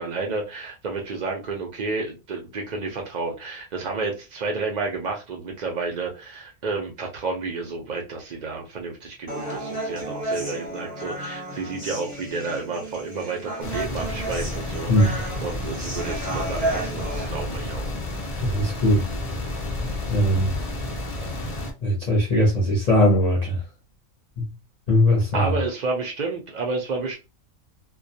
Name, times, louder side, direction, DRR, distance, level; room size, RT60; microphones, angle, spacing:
voice 1, 0.0-17.9 25.3-27.2, right 3 dB, 75° right, 0.4 m, -31 dB
Human voice, 9.3-17.3, right 1 dB, 5° right, 0.7 m, -33 dB
sound 1, 13.6-21.7, left 1 dB, 85° left, 0.3 m, -31 dB
voice 2, 18.4-19.0 20.1-20.5 21.8-23.6 24.4-24.5 24.9-25.5, left 1 dB, 40° left, 0.6 m, -20 dB
2.2 x 2.2 x 2.6 m
omnidirectional pair, 1.4 m